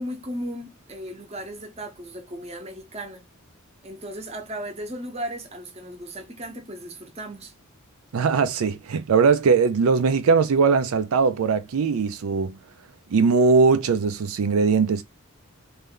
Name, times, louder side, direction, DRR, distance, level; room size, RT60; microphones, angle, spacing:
voice 1, 0.0-3.2 3.8-7.5, equal, 30° right, 0.8 m, -36 dB
voice 2, 8.1-12.5 13.1-15.0, right 5 dB, 80° right, 0.4 m, -20 dB
3.2 x 2.6 x 3.7 m
head